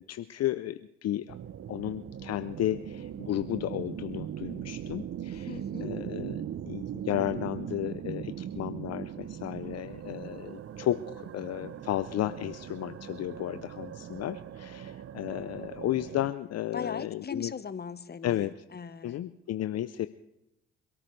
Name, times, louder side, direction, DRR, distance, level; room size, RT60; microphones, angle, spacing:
voice 1, 0.0-1.4 1.7-17.5 18.2-18.5 19.0-20.1, left 13 dB, 55° left, 12 dB, 0.6 m, -33 dB
sound 1, 1.3-16.3, right 9 dB, 50° right, 0.7 m, -40 dB
voice 2, 5.3-5.9 16.7-19.2, left 5 dB, 30° left, 13 dB, 1.2 m, -39 dB
27.0 x 13.5 x 3.3 m, 0.88 s
hypercardioid pair, 50°, 31 cm